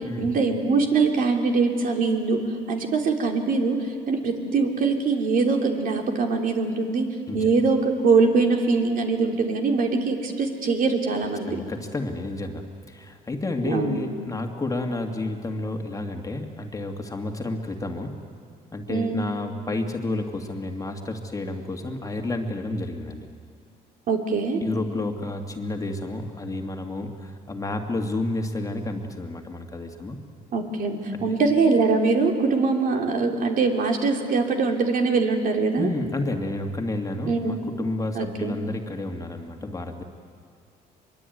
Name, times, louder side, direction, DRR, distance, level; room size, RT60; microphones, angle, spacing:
voice 1, 0.2-2.4 2.7-3.8 4.1-7.1 7.3-11.6 13.6-14.0 18.9-19.3 24.1-24.6 30.5-35.9 37.3-37.6 38.1-38.6, right 4 dB, 55° right, 3 dB, 3.2 m, -22 dB
voice 2, 11.5-18.1 18.7-23.3 24.6-30.2 31.1-31.2 35.8-40.0, left 2 dB, 20° left, 3 dB, 2.3 m, -30 dB
24.0 x 22.5 x 9.4 m, 2.2 s
cardioid pair, 110°, 17 cm